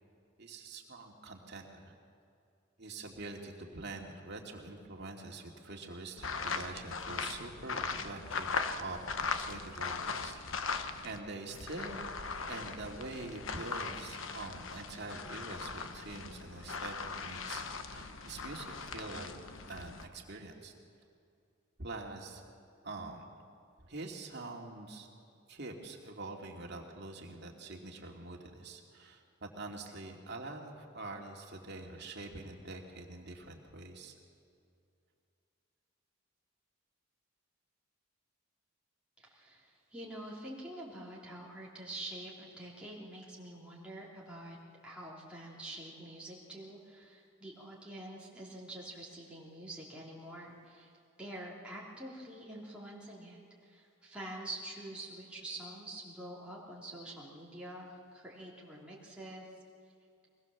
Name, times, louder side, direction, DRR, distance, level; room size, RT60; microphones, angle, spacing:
voice 1, 0.4-1.9 2.8-10.4 11.0-12.1 12.5-19.3 19.7-20.7 21.8-22.4 22.8-23.3 23.8-25.1 25.5-34.1, right 2 dB, 55° right, 1 dB, 2.6 m, -45 dB
sound 1, 6.2-11.2 11.5-20.1, left 4 dB, 65° left, 1.2 m, -39 dB
voice 2, 39.2-44.6 44.8-50.9 51.2-59.5, right 1 dB, 5° right, -6 dB, 3.2 m, -46 dB
23.0 x 20.5 x 7.3 m, 2.5 s
head